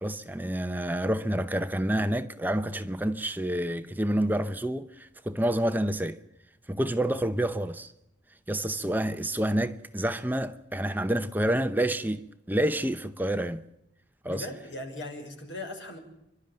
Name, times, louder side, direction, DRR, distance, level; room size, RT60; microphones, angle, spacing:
voice 1, 0.0-6.2 6.7-7.9 8.5-13.6 14.2-14.5, right 1 dB, 10° right, 0.7 m, -28 dB
voice 2, 14.2-16.0, left 2 dB, 75° left, 5.9 m, -39 dB
30.0 x 12.0 x 8.9 m
head